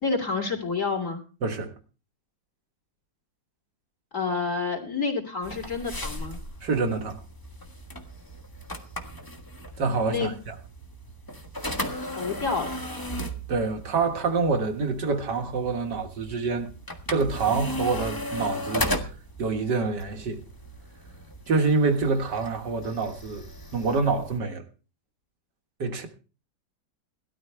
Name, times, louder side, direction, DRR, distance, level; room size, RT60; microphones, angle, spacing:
voice 1, 0.0-1.2 4.1-6.4 10.1-10.3 12.0-12.8, left 4 dB, 40° left, 3.1 m, -29 dB
voice 2, 1.4-1.7 6.6-7.2 9.8-10.5 13.5-16.7 17.1-18.9 19.4-20.4 21.5-23.4 23.7-24.6 25.8-26.1, right 4 dB, 65° right, 2.0 m, -26 dB
sound 1, 5.4-24.4, equal, 15° left, 1.3 m, -36 dB
18.0 x 13.0 x 3.3 m
omnidirectional pair, 2.0 m